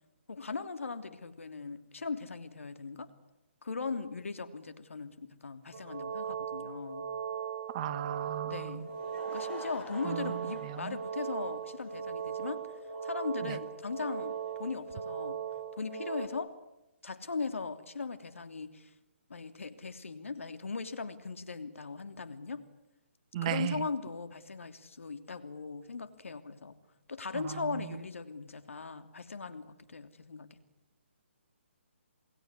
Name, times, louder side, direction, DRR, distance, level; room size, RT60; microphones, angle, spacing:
voice 1, 0.3-3.1 3.6-7.1 8.4-8.9 9.3-12.7 13.0-15.4 15.8-16.5 17.0-18.9 19.3-22.7 23.4-26.8 27.1-30.6, left 4 dB, 80° left, 9 dB, 3.0 m, -39 dB
sound 1, 5.7-16.3, right 7 dB, 45° right, 3.2 m, -38 dB
voice 2, 7.7-8.8 10.0-10.3 10.8-10.9 23.3-23.8, right 13 dB, 30° right, 14 dB, 1.0 m, -35 dB
Laughter / Crowd, 8.7-15.6, left 2 dB, 15° left, 3.7 m, -51 dB
28.0 x 20.0 x 9.8 m, 0.97 s
hypercardioid pair, 155°, 7 cm